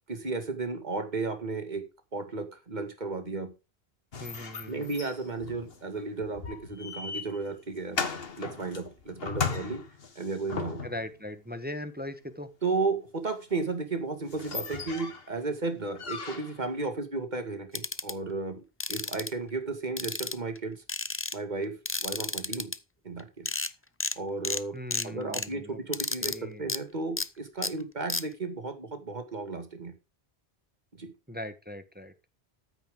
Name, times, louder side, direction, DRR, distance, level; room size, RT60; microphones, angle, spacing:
voice 1, 0.1-1.8 2.1-3.5 4.7-8.0 8.4-9.8 10.2-10.8 12.6-18.6 18.9-20.8 21.3-22.7 23.0-23.5 24.2-24.8 25.0-29.9 31.0-31.1, right 3 dB, 40° right, 8 dB, 2.1 m, -34 dB
sound 1, 4.1-11.2 13.5-13.6 14.0-14.1 14.2-15.3 16.0-16.7, left 5 dB, 60° left, 1.7 m, -37 dB
voice 2, 4.2-4.9 10.8-12.5 24.7-25.8 26.2-26.7 31.3-32.1, left 1 dB, 10° right, 10 dB, 1.2 m, -39 dB
sound 2, 17.7-18.1 18.8-19.3 20.0-20.6 20.9-21.4 21.9-22.8 23.2-23.3 23.5-23.7 24.0-24.2 24.4-24.6 24.9-25.5 25.9-26.4 26.7-26.8 27.2-27.3 27.6-27.7 28.1-28.2, left 2 dB, 15° left, 0.5 m, -32 dB
13.5 x 9.0 x 3.8 m, 0.27 s
omnidirectional pair, 1.1 m